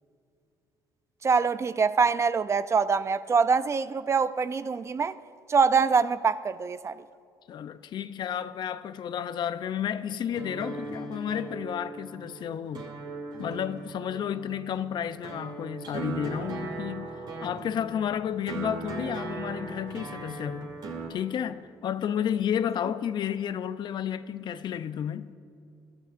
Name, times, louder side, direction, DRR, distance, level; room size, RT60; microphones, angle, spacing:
voice 1, 1.2-5.2 5.5-6.9, right 5 dB, 30° right, 0.4 m, -24 dB
voice 2, 7.5-12.9 13.4-17.1 17.4-20.7 21.1-25.3, left 9 dB, 55° left, 0.6 m, -32 dB
sound 1, 10.3-21.1, right 3 dB, 55° right, 2.5 m, -38 dB
22.0 x 13.0 x 2.5 m
supercardioid pair, 85°, 9 cm